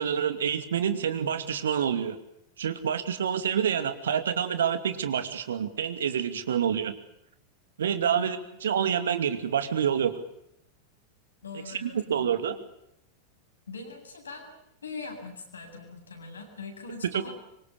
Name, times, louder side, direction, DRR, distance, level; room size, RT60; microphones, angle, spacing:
voice 1, 0.0-2.2 2.6-6.9 7.8-10.1 11.7-12.6 17.0-17.3, right 8 dB, 65° right, 10 dB, 2.5 m, -27 dB
voice 2, 8.0-8.3 11.4-12.5 13.7-14.5 14.8-17.3, left 4 dB, 70° left, 3 dB, 7.8 m, -42 dB
25.5 x 25.0 x 7.2 m, 0.77 s
figure-of-eight pair, 90°, 0 cm